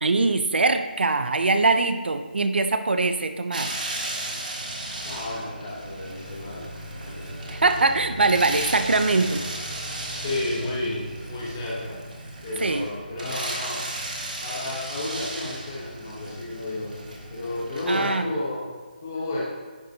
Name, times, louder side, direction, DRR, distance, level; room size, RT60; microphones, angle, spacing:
voice 1, 0.0-3.7 7.5-9.4 12.6-12.8 17.9-18.3, right 3 dB, 75° right, 8 dB, 0.6 m, -22 dB
sound 1, 3.5-18.1, right 1 dB, 50° right, 1.5 m, -35 dB
voice 2, 5.0-6.6 7.0-7.3 10.2-12.0 12.4-13.8 14.4-18.7 19.0-19.4, left 2 dB, 15° left, -5 dB, 1.0 m, -32 dB
Bowed string instrument, 6.4-11.9, left 2 dB, 20° right, 1.4 m, -47 dB
10.0 x 6.5 x 2.8 m, 1.4 s
hypercardioid pair, 180°, 6 cm